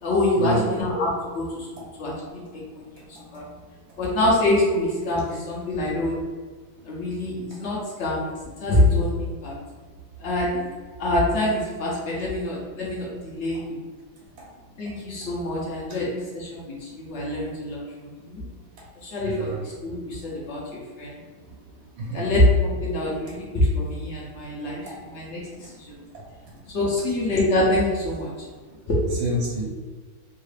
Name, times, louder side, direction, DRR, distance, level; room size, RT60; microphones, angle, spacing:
voice 1, 0.0-1.7 2.0-2.9 3.3-3.4 4.0-6.2 6.8-8.3 8.6-9.5 10.2-10.7 11.0-13.8 14.8-18.5 19.0-21.2 22.1-25.9 26.7-28.3 28.9-29.0, left 1 dB, 75° left, -4 dB, 0.6 m, -25 dB
voice 2, 19.2-19.6 22.0-22.4 29.2-29.6, equal, 80° right, -4 dB, 1.6 m, -28 dB
3.6 x 2.4 x 3.2 m, 1.5 s
omnidirectional pair, 2.2 m